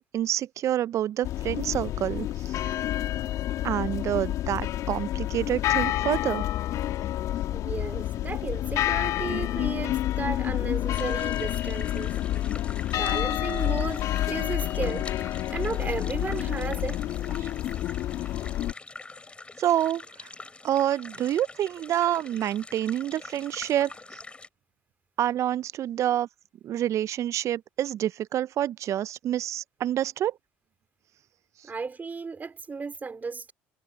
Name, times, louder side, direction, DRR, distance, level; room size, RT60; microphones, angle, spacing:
voice 1, 0.0-2.3 2.6-2.8 3.6-6.4 19.6-20.0 20.6-23.9 25.2-26.3 26.6-30.3, right 11 dB, 50° right, 0.8 m, -27 dB
sound 1, 1.2-18.7, left 13 dB, 55° left, 3.1 m, -29 dB
voice 2, 7.5-12.1 12.9-15.1 15.5-17.0 31.6-33.5, right 4 dB, 25° right, 2.8 m, -34 dB
sound 2, 10.9-24.5, left 3 dB, 15° left, 4.8 m, -45 dB
hypercardioid pair, 65°, 7 cm